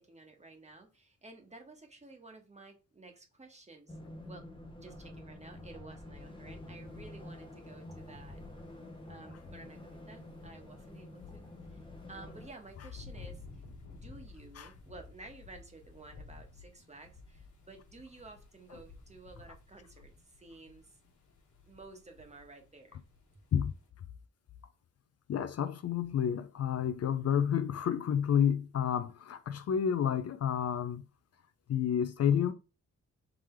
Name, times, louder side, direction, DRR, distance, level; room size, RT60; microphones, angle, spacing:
voice 1, 0.0-4.0 4.3-4.4 4.8-8.4 9.1-20.9 21.7-23.0, right 3 dB, 25° right, 1.2 m, -53 dB
sound 1, 3.9-12.5, left 1 dB, 15° left, 0.8 m, -48 dB
sound 2, 6.1-23.9, left 3 dB, 85° left, 1.3 m, -55 dB
voice 2, 25.3-31.0 31.7-32.5, left 8 dB, 55° left, 0.4 m, -30 dB
3.7 x 3.1 x 4.4 m
cardioid pair, 90°, 30 cm